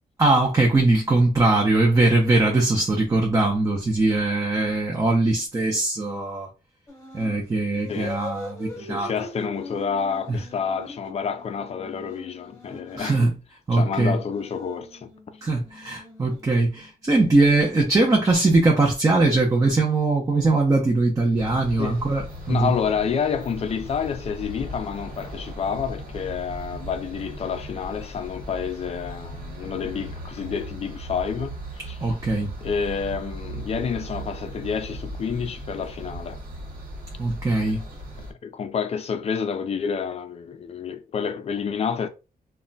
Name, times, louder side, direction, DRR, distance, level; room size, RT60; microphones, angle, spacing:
voice 1, 0.2-6.5 7.1-9.1 13.0-13.3 13.7-14.2 15.4-22.7 32.0-32.5 37.2-37.8, right 2 dB, 20° right, 0.5 m, -21 dB
sound 1, 6.9-7.4 7.7-13.4 14.1-17.0, left 1 dB, 20° left, 0.9 m, -42 dB
voice 2, 8.8-13.3 13.7-15.1 21.8-22.1 22.5-32.0 32.6-36.4 37.6-37.8 38.2-42.1, left 6 dB, 40° left, 0.4 m, -29 dB
sound 2, 21.4-38.3, right 1 dB, 55° right, 1.2 m, -37 dB
2.2 x 2.1 x 3.7 m
wide cardioid pair, 155°, 16 cm